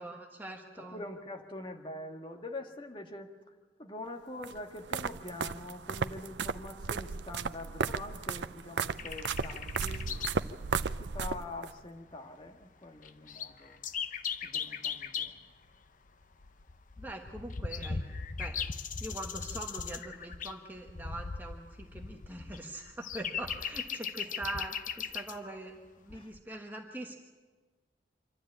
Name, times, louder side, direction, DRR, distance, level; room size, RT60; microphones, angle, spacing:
voice 1, 0.0-1.0 17.0-18.0 18.4-27.2, right 1 dB, 10° right, 1 dB, 1.2 m, -43 dB
voice 2, 0.8-10.6 11.0-13.8 14.4-15.6 24.3-24.4 26.1-26.3, left 2 dB, 30° left, 4 dB, 1.7 m, -44 dB
sound 1, 4.4-11.7, right 5 dB, 80° right, 0.6 m, -35 dB
sound 2, 9.0-10.4 10.7-10.8 11.5-11.6 11.8-12.1 12.6-12.7 13.0-15.4 16.1-25.4 26.1-26.4, left 6 dB, 45° left, 0.7 m, -38 dB
26.0 x 12.5 x 8.7 m, 1.4 s
head